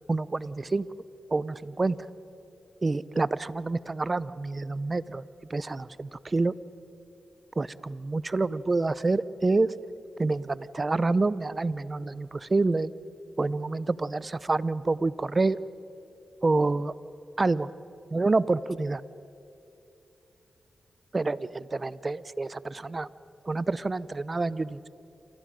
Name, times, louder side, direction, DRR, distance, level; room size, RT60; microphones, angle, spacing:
voice 1, 0.1-0.9 1.3-2.0 2.8-5.2 5.5-6.5 7.6-9.7 10.2-12.9 13.4-15.6 16.4-16.9 17.4-17.7 18.1-19.0 21.1-23.1 23.4-24.9, right 3 dB, 40° right, 17 dB, 0.7 m, -27 dB
28.0 x 27.5 x 5.2 m, 2.7 s
cardioid pair, 50°, 0 cm